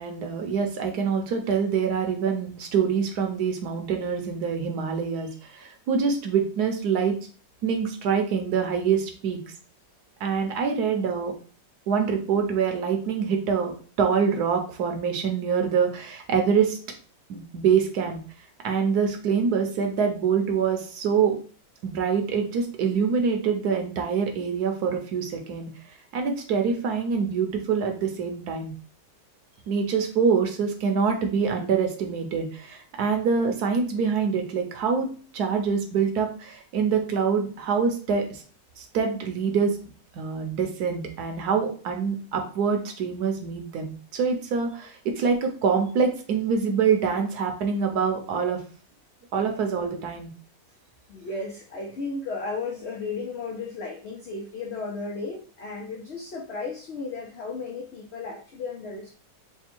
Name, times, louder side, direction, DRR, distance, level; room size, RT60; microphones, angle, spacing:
voice 1, 0.0-7.1 7.6-9.4 10.2-11.3 11.9-13.7 14.0-16.8 17.3-18.2 18.6-21.4 21.8-25.7 26.1-28.7 29.7-35.1 35.3-38.4 38.8-39.8 40.1-48.6 49.3-50.3, right 6 dB, 70° right, 4 dB, 1.2 m, -25 dB
voice 2, 51.1-59.1, left 3 dB, 90° left, 1 dB, 0.5 m, -34 dB
3.5 x 2.2 x 4.3 m, 0.40 s
omnidirectional pair, 1.9 m